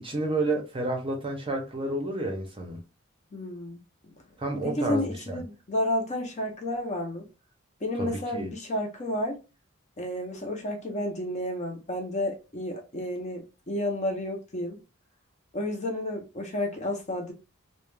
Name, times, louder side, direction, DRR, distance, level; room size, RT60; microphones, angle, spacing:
voice 1, 0.0-2.8 4.4-5.4 8.0-8.5, right 2 dB, 25° right, 0.6 m, -30 dB
voice 2, 3.3-3.8 4.6-7.3 7.8-9.4 10.0-14.8 15.5-17.3, left 1 dB, 35° left, 0.6 m, -31 dB
2.3 x 2.1 x 3.2 m
head